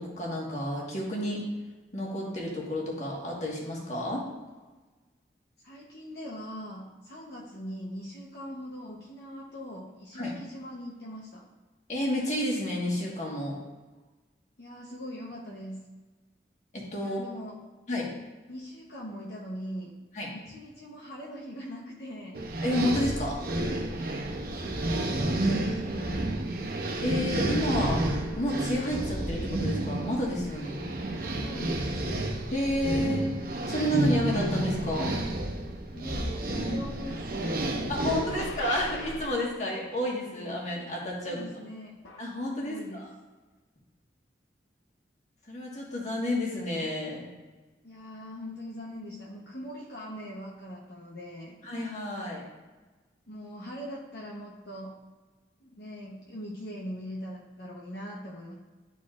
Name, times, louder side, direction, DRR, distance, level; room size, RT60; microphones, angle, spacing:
voice 1, 0.0-1.4 1.9-4.3 10.1-10.3 11.9-13.6 16.7-17.2 17.9-18.1 20.1-20.3 22.6-23.4 27.0-28.0 28.4-30.8 32.5-33.3 33.7-35.2 37.9-41.4 42.2-43.1 45.5-47.2 51.6-52.4, left 1 dB, 40° left, -3 dB, 1.6 m, -30 dB
voice 2, 5.6-11.4 14.6-15.8 17.0-17.6 18.5-19.9 20.3-22.4 24.3-26.5 31.4-31.9 35.9-38.5 41.2-42.0 42.6-43.0 47.8-51.6 53.3-54.9 55.6-58.5, equal, 60° left, -4 dB, 0.9 m, -41 dB
sound 1, 22.3-39.3, right 1 dB, 50° right, 0.7 m, -31 dB
sound 2, 38.3-39.6 42.0-42.4, left 3 dB, 80° left, 0.8 m, -41 dB
11.5 x 4.0 x 2.5 m, 1.2 s
head